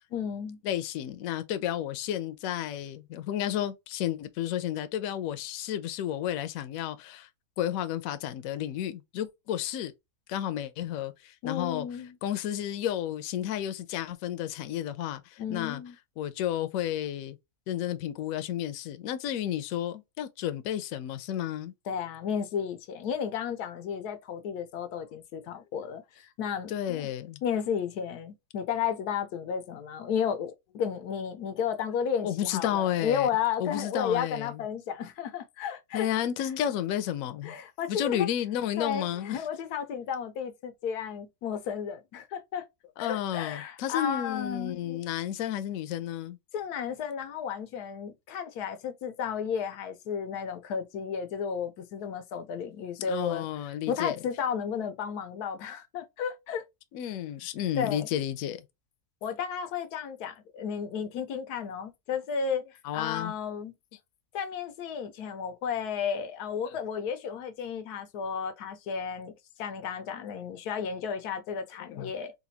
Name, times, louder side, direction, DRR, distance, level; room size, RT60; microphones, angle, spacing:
voice 1, 0.1-0.6 11.4-12.2 15.4-15.9 21.9-27.1 27.4-36.1 37.4-38.3 38.8-42.6 43.0-45.0 46.5-56.6 57.8-58.1 59.2-62.6 62.9-63.7 64.3-69.3 69.6-72.3, left 7 dB, 90° left, 1.2 m, -33 dB
voice 2, 0.6-7.3 7.6-9.9 10.3-11.9 12.2-15.8 16.2-17.4 17.7-21.7 26.7-27.4 32.2-33.3 33.6-34.6 35.9-37.6 37.9-39.4 43.0-46.4 53.1-54.2 56.9-58.6 62.8-63.3 66.6-66.8 71.9-72.1, left 11 dB, 70° left, 0.9 m, -32 dB
4.1 x 2.2 x 2.7 m
omnidirectional pair, 1.6 m